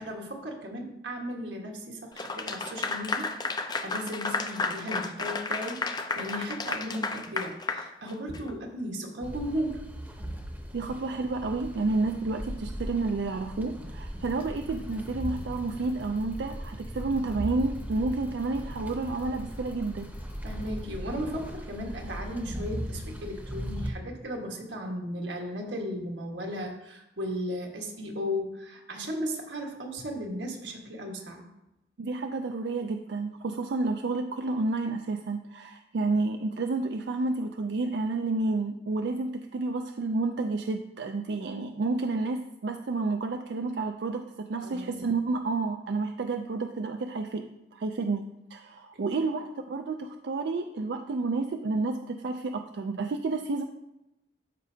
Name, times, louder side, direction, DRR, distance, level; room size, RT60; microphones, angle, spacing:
voice 1, 0.1-9.8 20.4-31.5 44.6-45.1 49.0-49.2, equal, 90° right, 1 dB, 1.5 m, -36 dB
Clapping / Applause, 2.2-8.5, left 3 dB, 25° left, 0.4 m, -32 dB
sound 1, 9.2-23.9, equal, 10° right, 0.8 m, -38 dB
voice 2, 10.7-20.1 32.0-47.5 47.7-53.6, right 3 dB, 65° right, 5 dB, 0.4 m, -30 dB
sound 2, 14.2-20.8, equal, 80° left, 2.9 m, -47 dB
13.0 x 5.3 x 2.7 m, 0.92 s
head